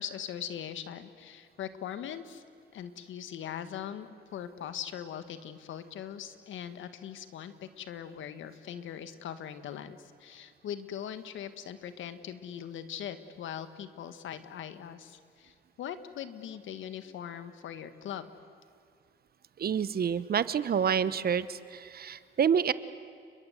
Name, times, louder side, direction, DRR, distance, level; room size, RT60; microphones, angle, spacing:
voice 1, 0.0-2.4 2.7-18.3, left 9 dB, 75° left, 11 dB, 1.7 m, -41 dB
voice 2, 19.6-22.7, right 7 dB, 50° right, 15 dB, 1.0 m, -28 dB
30.0 x 22.0 x 8.2 m, 2.3 s
cardioid pair, 90°, 20 cm